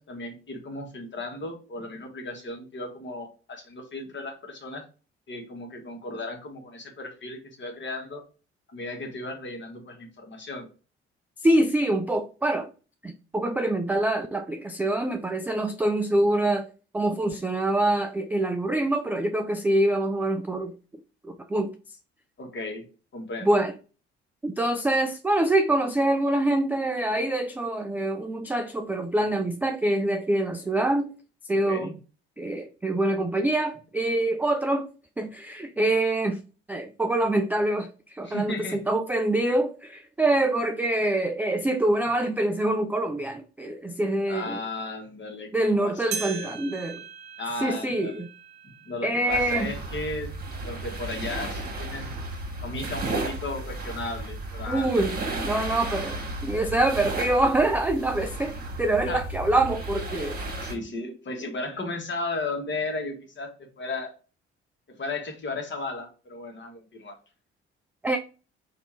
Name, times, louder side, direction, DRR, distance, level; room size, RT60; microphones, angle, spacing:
voice 1, 0.0-4.9 5.3-8.2 8.7-10.7 22.4-22.8 23.1-23.6 31.6-32.0 38.2-38.8 44.3-46.5 47.4-48.2 48.6-50.3 50.6-52.2 52.6-54.9 55.3-55.6 59.1-59.3 60.2-60.3 60.6-64.1 64.9-67.2, left 2 dB, 35° left, 1.4 m, -35 dB
voice 2, 11.4-12.7 13.0-16.7 16.9-20.8 21.2-21.7 23.4-23.7 24.4-31.1 31.4-32.0 32.4-34.9 35.2-36.4 36.7-44.6 45.5-47.0 47.6-48.3 49.0-49.7 54.7-60.4 68.0-68.2, right 1 dB, 5° right, 0.3 m, -25 dB
sound 1, 46.1-50.8 51.3-51.4 52.2-52.3 53.2-53.3, right 8 dB, 55° right, 0.7 m, -40 dB
sound 2, 49.3-60.7, right 2 dB, 30° right, 1.5 m, -34 dB
3.4 x 2.6 x 4.5 m
figure-of-eight pair, 45°, 33 cm